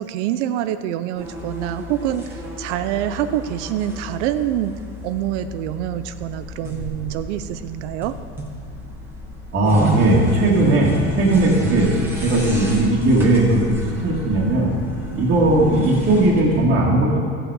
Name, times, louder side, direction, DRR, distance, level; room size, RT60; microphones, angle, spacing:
voice 1, 0.0-4.7 5.0-8.2, right 12 dB, 80° right, 11 dB, 0.6 m, -26 dB
sound 1, 1.1-16.6, equal, 5° right, 1.5 m, -31 dB
voice 2, 9.5-11.9 12.1-14.7 15.1-17.2, right 2 dB, 35° right, -7 dB, 1.9 m, -17 dB
14.0 x 8.0 x 4.7 m, 2.3 s
supercardioid pair, 150°, 35 cm